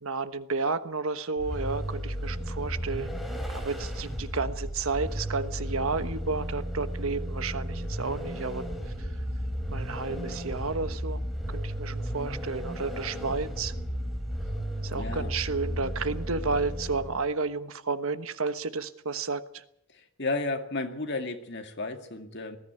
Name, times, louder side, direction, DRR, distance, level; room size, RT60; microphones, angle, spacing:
voice 1, 0.0-3.1 3.5-8.7 9.0-9.1 9.7-11.2 11.5-13.7 14.8-19.6, right 4 dB, 70° right, 11 dB, 1.2 m, -32 dB
Vehicle, 1.4-17.3, equal, ahead, 3.2 m, -34 dB
voice 2, 14.9-15.3 20.2-22.6, left 3 dB, 50° left, 6 dB, 2.1 m, -33 dB
20.0 x 14.5 x 9.4 m, 0.78 s
head